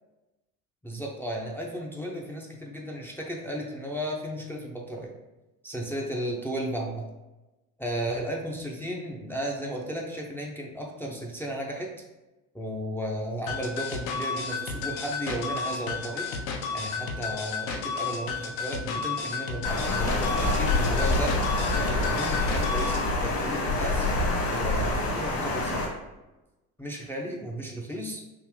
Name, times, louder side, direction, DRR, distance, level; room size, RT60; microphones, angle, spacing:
voice 1, 0.8-5.1 5.6-7.1 7.8-11.9 12.5-16.3 16.7-24.1 24.5-25.9 26.8-28.2, right 1 dB, 5° left, -2 dB, 0.4 m, -34 dB
sound 1, 13.5-23.1, left 5 dB, 70° left, 0.6 m, -32 dB
Water, 19.6-25.8, left 2 dB, 50° left, 1.3 m, -26 dB
3.6 x 2.6 x 3.0 m, 1.0 s
hypercardioid pair, 65°, 44 cm